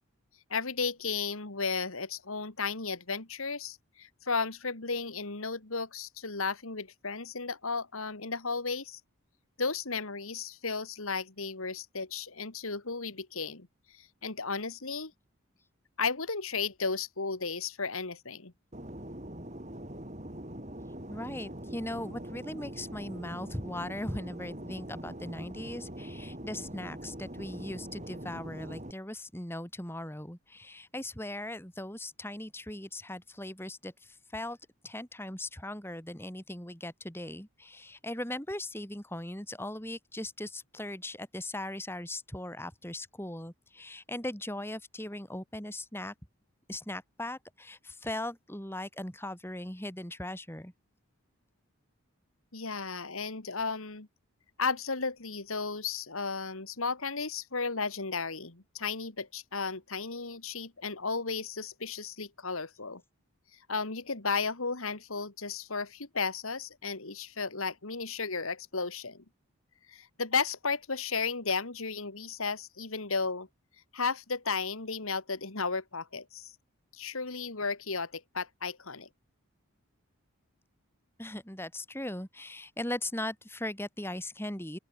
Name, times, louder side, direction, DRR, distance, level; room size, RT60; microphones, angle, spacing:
voice 1, 0.5-9.0 9.6-13.7 13.9-15.1 16.0-18.5 52.5-54.1 54.6-63.0 63.7-69.2 69.9-73.5 73.9-76.5 76.9-79.1, left 4 dB, 75° left, 2.3 m, -34 dB
Fixed-wing aircraft airplane, 18.7-28.9, right 1 dB, 30° right, 3.4 m, -43 dB
voice 2, 21.1-34.6 34.8-46.1 46.7-50.7 81.2-84.8, left 1 dB, 10° left, 3.5 m, -39 dB
open air
head